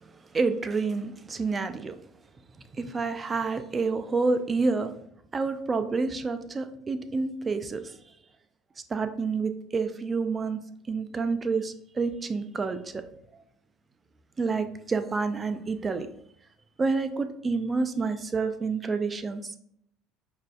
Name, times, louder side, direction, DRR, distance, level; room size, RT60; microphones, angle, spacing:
voice 1, 0.3-1.9 2.7-4.9 5.3-7.9 8.9-10.6 10.9-13.0 14.4-16.1 16.8-19.6, right 4 dB, 25° right, 9 dB, 0.4 m, -28 dB
5.2 x 2.5 x 2.3 m, 0.71 s
supercardioid pair, 85°, 0 cm